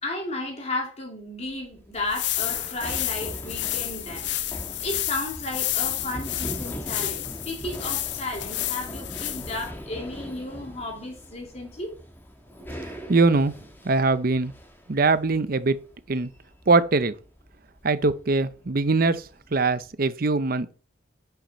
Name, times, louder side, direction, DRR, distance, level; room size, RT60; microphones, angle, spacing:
voice 1, 0.0-4.3 4.8-12.0, left 2 dB, 30° left, 2.6 m, -33 dB
Run, 1.3-19.9, equal, 10° left, 1.3 m, -41 dB
sound 1, 1.9-9.7, left 14 dB, 60° left, 0.7 m, -30 dB
voice 2, 12.8-13.5 13.8-14.5 14.9-15.8 16.1-16.3 16.7-17.1 17.8-20.7, right 3 dB, 45° right, 0.6 m, -22 dB
10.5 x 5.9 x 4.2 m
head